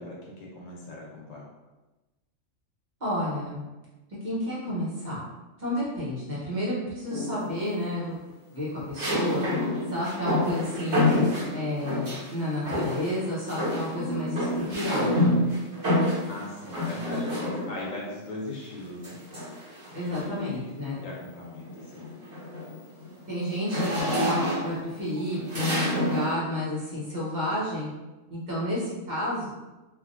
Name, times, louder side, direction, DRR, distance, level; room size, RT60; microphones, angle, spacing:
voice 1, 0.0-1.5 16.3-19.2 19.9-22.1, left 2 dB, 85° left, -3 dB, 1.2 m, -40 dB
voice 2, 3.0-3.6 4.2-5.2 5.6-8.2 8.5-9.5 9.9-11.1 11.5-15.5 19.9-21.0 23.3-27.9 28.3-29.5, left 1 dB, 40° right, -8 dB, 1.1 m, -31 dB
sound 1, 7.1-7.6 9.0-12.3 12.7-13.2 13.5-17.9 19.0-20.4 20.9-21.2 21.6-26.3, left 1 dB, 65° right, 1.5 m, -28 dB
3.2 x 2.5 x 2.5 m, 1.1 s
omnidirectional pair, 1.3 m